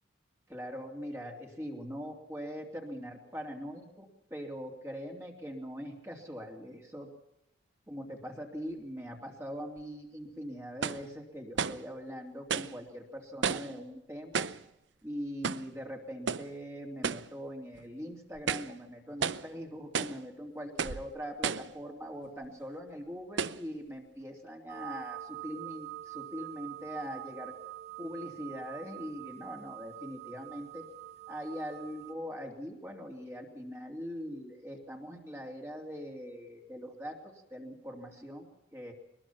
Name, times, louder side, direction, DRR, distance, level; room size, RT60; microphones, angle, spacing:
voice 1, 0.5-7.1 7.9-14.5 15.0-27.5 28.0-30.9 31.3-38.9, equal, 15° right, 0 dB, 3.1 m, -42 dB
sound 1, 9.8-9.9 10.8-11.1 11.6-11.9 12.5-12.8 13.4-13.8 14.3-14.7 15.4-15.7 16.3-16.5 17.0-17.3 17.8-17.9 18.4-18.8 19.2-19.5 19.9-20.2 20.8-21.1 21.4-21.8 22.4-22.5 23.4-23.6, right 6 dB, 75° right, 0.7 m, -33 dB
sound 2, 24.7-32.1, right 14 dB, 35° right, 1.4 m, -45 dB
22.5 x 21.0 x 5.9 m, 0.86 s
head